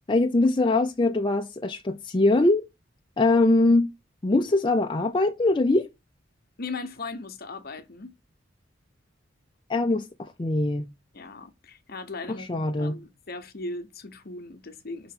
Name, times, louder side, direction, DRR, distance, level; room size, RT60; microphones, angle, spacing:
voice 1, 0.1-2.7 3.2-3.9 4.2-5.9 9.7-10.9 12.3-12.9, left 2 dB, 25° left, 0.5 m, -22 dB
voice 2, 6.6-8.1 11.1-15.1, left 3 dB, 50° left, 1.0 m, -38 dB
5.6 x 4.0 x 5.9 m
head